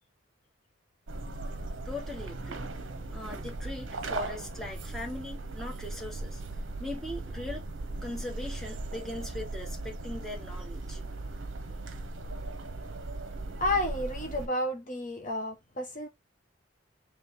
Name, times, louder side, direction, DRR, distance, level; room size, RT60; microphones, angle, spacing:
sound 1, 1.1-14.5, right 2 dB, 70° right, 0.7 m, -38 dB
voice 1, 1.8-2.7 3.1-6.4 6.8-7.7 8.0-11.0, left 2 dB, ahead, 1.2 m, -40 dB
voice 2, 13.6-16.1, left 1 dB, 40° left, 0.7 m, -31 dB
3.2 x 3.1 x 4.3 m
head